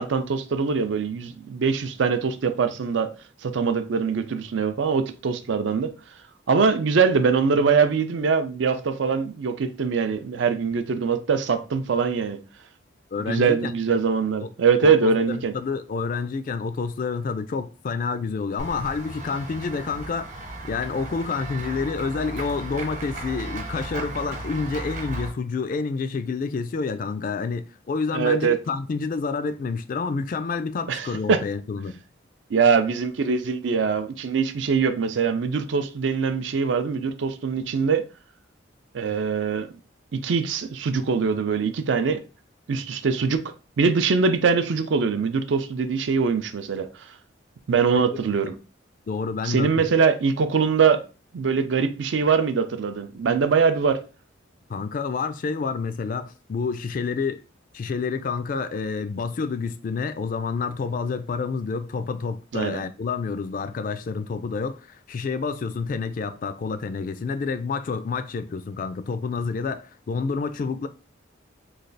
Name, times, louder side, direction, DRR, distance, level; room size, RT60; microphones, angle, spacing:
voice 1, 0.0-3.1 3.4-5.9 6.5-12.4 13.3-15.5 28.1-28.6 30.9-31.4 32.5-38.0 38.9-39.7 40.1-42.2 42.7-43.4 43.8-47.1 47.7-48.5 49.4-51.0 51.3-54.0 62.5-62.8, right 5 dB, 65° right, 0.4 m, -22 dB
voice 2, 13.1-13.7 14.4-14.5 14.8-20.3 20.6-32.0 47.9-48.0 49.1-49.8 54.7-57.4 57.7-70.9, left 4 dB, 45° left, 0.3 m, -28 dB
Run / Walk footsteps / Bell, 18.6-25.3, right 2 dB, 40° right, 1.0 m, -35 dB
3.2 x 2.3 x 3.9 m
head